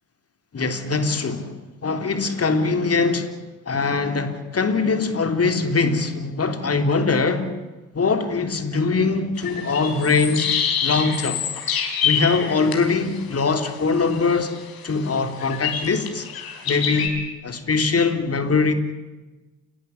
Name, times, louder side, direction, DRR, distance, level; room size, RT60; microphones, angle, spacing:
voice 1, 0.5-1.5 1.8-3.3 3.7-7.5 7.9-11.4 12.0-14.5 14.8-16.3 16.7-17.1 17.4-18.7, left 4 dB, 30° left, 3.5 m, -22 dB
sound 1, 9.4-17.1, left 7 dB, 50° left, 4.4 m, -27 dB
29.5 x 13.5 x 9.7 m
figure-of-eight pair, 50°, 45 cm